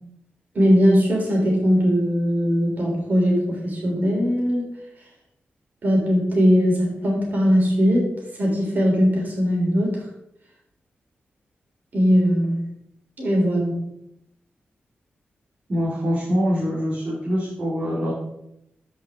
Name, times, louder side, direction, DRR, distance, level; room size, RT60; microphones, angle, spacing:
voice 1, 0.6-4.7 5.8-8.1 8.4-10.0 11.9-12.6 13.2-13.8, equal, 50° right, -2 dB, 3.5 m, -20 dB
voice 2, 15.7-18.1, equal, 30° right, -7 dB, 2.4 m, -24 dB
13.0 x 5.6 x 3.7 m, 0.79 s
wide cardioid pair, 145°, 4 cm